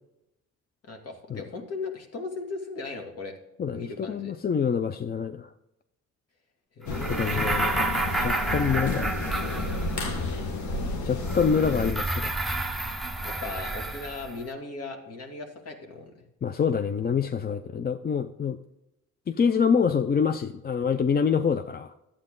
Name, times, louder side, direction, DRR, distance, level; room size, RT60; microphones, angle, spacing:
voice 1, 0.8-3.3 3.7-4.3 6.8-7.5 13.2-16.1, left 3 dB, 55° left, 2 dB, 2.4 m, -37 dB
voice 2, 3.6-5.5 7.1-7.9 8.2-9.1 11.0-12.3 16.4-18.6 19.3-21.9, left 6 dB, 30° left, 10 dB, 0.5 m, -26 dB
sound 1, 6.9-11.9, left 2 dB, 70° left, 1.8 m, -31 dB
sound 2, 6.9-10.2 11.2-14.4, right 2 dB, ahead, 1.0 m, -30 dB
12.0 x 8.6 x 3.8 m, 0.88 s
cardioid pair, 90°, 30 cm